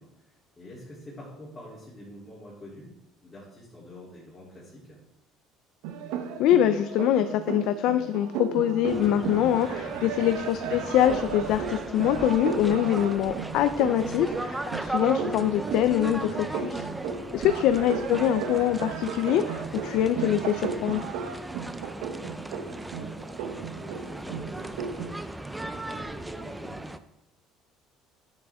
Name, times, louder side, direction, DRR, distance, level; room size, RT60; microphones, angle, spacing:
voice 1, 0.0-3.0 3.2-5.0 10.0-10.2 14.5-14.8 17.1-17.5 22.2-25.2 25.5-26.9, left 1 dB, 20° left, -7 dB, 3.1 m, -47 dB
sound 1, 5.8-25.2, right 7 dB, 85° right, 1.1 m, -35 dB
voice 2, 6.4-16.9 17.3-21.0, left 11 dB, 70° left, 10 dB, 0.5 m, -24 dB
sound 2, 8.8-27.0, right 1 dB, 10° right, 0.5 m, -37 dB
9.7 x 7.6 x 3.6 m, 0.87 s
cardioid pair, 115°, 0 cm